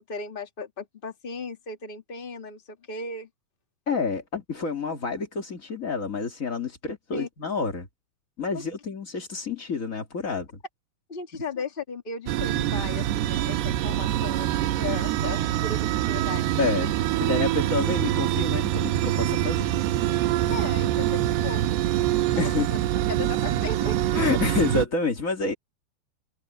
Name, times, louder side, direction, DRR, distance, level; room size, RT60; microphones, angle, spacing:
voice 1, 0.1-3.3 7.1-7.3 8.5-8.6 11.1-16.6 20.5-21.6 22.3-22.7 23.1-24.0, left 4 dB, 60° left, 0.5 m, -36 dB
voice 2, 3.9-7.9 8.4-10.5 16.6-16.9 17.2-19.8 22.4-22.7 24.1-25.5, left 4 dB, 35° left, 1.4 m, -28 dB
sound 1, 12.3-24.9, right 13 dB, 85° right, 3.0 m, -25 dB
omnidirectional pair, 4.6 m